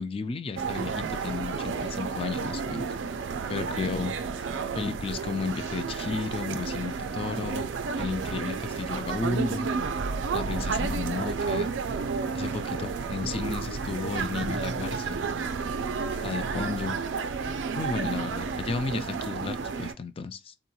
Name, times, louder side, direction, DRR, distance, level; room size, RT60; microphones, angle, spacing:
voice 1, 0.0-2.9 3.5-4.1 4.7-7.7 8.0-9.7 10.3-11.7 12.3-15.2 16.2-17.0 17.7-20.5, left 4 dB, 30° left, 0.3 m, -33 dB
sound 1, 0.6-19.9, right 5 dB, 85° right, 0.4 m, -31 dB
3.7 x 2.2 x 2.8 m
head